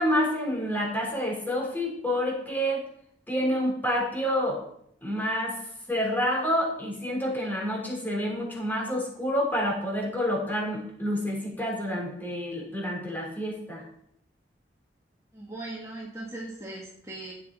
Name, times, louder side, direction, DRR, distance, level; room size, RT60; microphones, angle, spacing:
voice 1, 0.0-2.8 3.3-4.6 5.0-5.5 5.9-13.8, equal, 10° left, -2 dB, 3.6 m, -28 dB
voice 2, 15.3-17.3, right 2 dB, 20° right, -4 dB, 1.8 m, -39 dB
14.0 x 8.2 x 4.1 m, 0.72 s
head